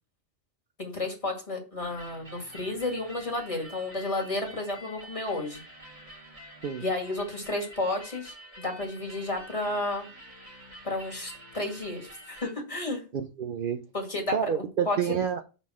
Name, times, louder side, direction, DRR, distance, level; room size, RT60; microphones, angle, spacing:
voice 1, 0.8-5.6 6.8-10.1 10.8-13.0 13.9-15.0, left 2 dB, 30° left, 2.0 m, -32 dB
sound 1, 1.8-12.5, equal, 35° right, 1.6 m, -48 dB
voice 2, 13.1-13.8 14.3-15.4, right 8 dB, 60° right, 0.7 m, -29 dB
5.5 x 4.2 x 6.1 m
omnidirectional pair, 1.1 m